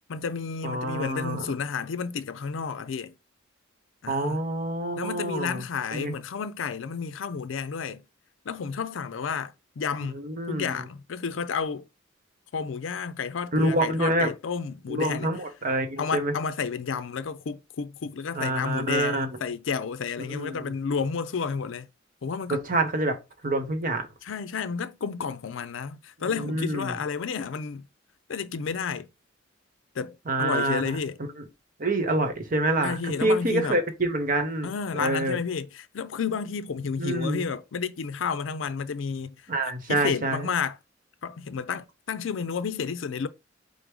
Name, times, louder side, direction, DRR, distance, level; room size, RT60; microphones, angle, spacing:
voice 1, 0.1-3.1 4.0-4.4 5.0-8.0 8.5-10.2 10.5-11.9 12.5-15.4 16.0-21.9 22.2-22.6 24.2-27.9 28.3-29.1 29.9-31.2 32.8-33.8 34.6-39.3 39.9-40.8 41.2-43.3, left 6 dB, 70° left, 0.4 m, -31 dB
voice 2, 0.6-1.4 4.1-5.6 5.9-6.1 10.1-10.8 13.5-14.3 14.9-16.3 18.3-19.3 20.3-20.8 22.5-23.2 23.4-24.1 26.3-27.0 30.3-31.0 31.4-31.5 31.8-34.7 35.0-35.4 37.0-37.5 39.5-40.5, right 1 dB, 45° right, 1.0 m, -27 dB
5.2 x 2.0 x 4.7 m
head